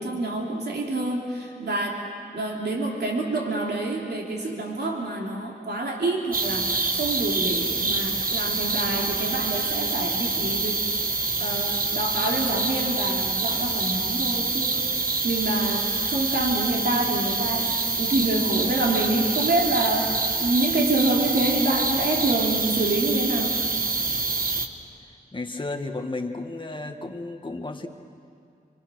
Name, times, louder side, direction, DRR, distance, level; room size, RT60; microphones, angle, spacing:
voice 1, 0.0-2.0 2.3-10.8 11.4-20.1 20.4-23.6, right 2 dB, 75° right, -1 dB, 3.0 m, -27 dB
sound 1, 6.3-24.7, right 3 dB, 55° right, 1.4 m, -26 dB
voice 2, 25.3-27.9, left 2 dB, 30° left, 3 dB, 1.7 m, -33 dB
27.0 x 24.0 x 6.4 m, 2.4 s
wide cardioid pair, 105°, 17 cm